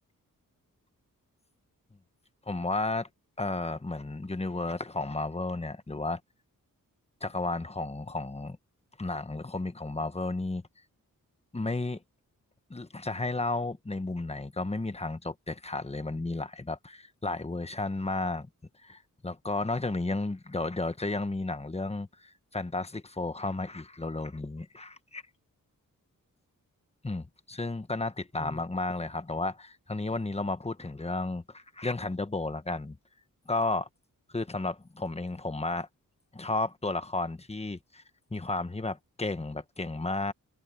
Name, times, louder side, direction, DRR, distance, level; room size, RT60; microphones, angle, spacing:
voice 1, 2.5-3.1 3.4-6.2 7.2-8.6 9.0-10.6 11.5-12.0 12.7-18.5 18.8-25.2 27.0-33.0 33.5-33.9 34.3-35.9 36.3-38.0 38.3-40.3, left 2 dB, 20° left, 1.3 m, -33 dB
wide cardioid pair, 85°, 34 cm